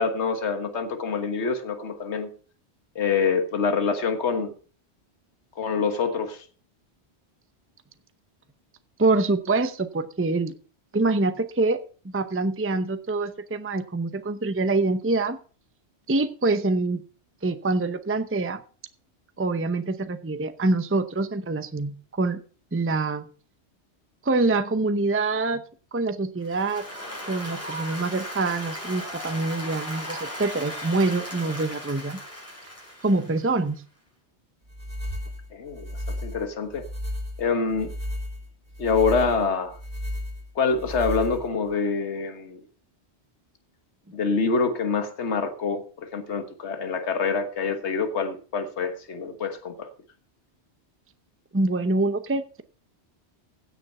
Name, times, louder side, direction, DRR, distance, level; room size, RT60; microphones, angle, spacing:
voice 1, 0.0-2.3 2.9-4.5 5.6-6.4 35.5-35.9 36.2-36.8 37.4-37.9 38.8-39.8 40.5-42.6 44.1-49.9, left 4 dB, 80° left, 8 dB, 1.7 m, -26 dB
voice 2, 9.0-10.5 10.9-15.4 16.1-17.0 17.4-18.6 19.4-22.4 22.7-23.2 24.2-25.6 25.9-26.8 27.3-32.2 33.0-33.8 51.5-52.6, right 3 dB, 15° right, 10 dB, 0.7 m, -25 dB
Applause, 26.4-33.6, equal, 10° left, 5.9 m, -37 dB
sound 1, 34.7-41.7, left 1 dB, 55° right, 3.3 m, -34 dB
16.0 x 6.7 x 5.5 m, 0.39 s
omnidirectional pair, 1.2 m